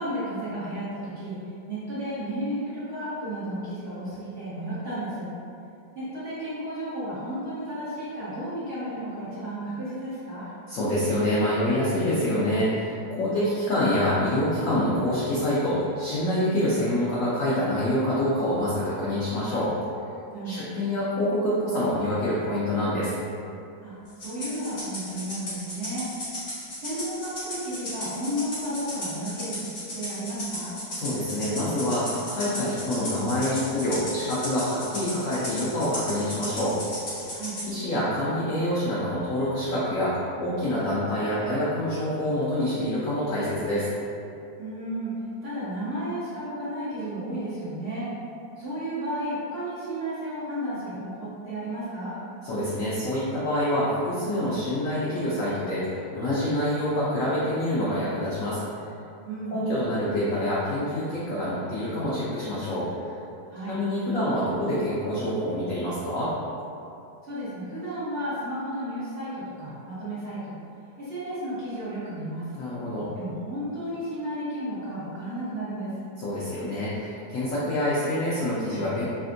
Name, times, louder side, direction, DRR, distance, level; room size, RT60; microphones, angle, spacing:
voice 1, 0.0-1.4 1.7-5.3 5.9-10.4 13.3-13.5 20.3-20.7 23.8-23.9 24.2-26.1 26.8-30.7 37.3-37.5 44.6-45.1 45.4-48.1 48.6-52.1 59.3-59.6 63.5-63.8 67.2-70.5 71.0-72.5 73.1-75.9, right 1 dB, 65° right, -12 dB, 0.5 m, -33 dB
voice 2, 10.7-19.7 20.4-23.1 30.9-36.8 37.7-43.9 52.4-58.6 59.5-63.2 63.7-66.3 72.6-73.1 76.2-79.0, left 1 dB, 90° left, -9 dB, 0.7 m, -26 dB
Rattle (instrument), 24.2-37.7, left 1 dB, 45° left, 1.1 m, -35 dB
3.4 x 2.5 x 2.5 m, 2.6 s
omnidirectional pair, 2.1 m